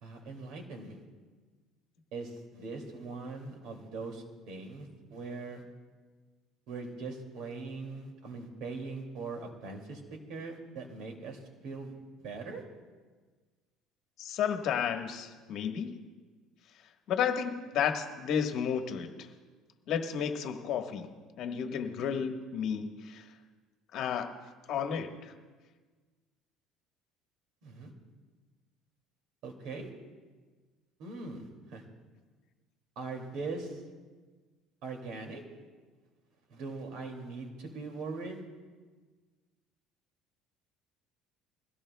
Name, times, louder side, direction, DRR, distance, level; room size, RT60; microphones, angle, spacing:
voice 1, 0.0-1.0 2.1-5.6 6.7-10.0 10.3-12.6 27.6-27.9 29.4-29.9 31.0-31.8 33.0-33.8 34.8-35.4 36.5-38.4, right 3 dB, 70° right, 3 dB, 2.3 m, -41 dB
voice 2, 14.2-16.0 17.1-19.1 19.9-21.1 21.4-23.2 23.9-24.3 24.7-25.1, left 7 dB, 60° left, 5 dB, 1.2 m, -32 dB
21.5 x 16.5 x 2.2 m, 1.4 s
cardioid pair, 120°, 0 cm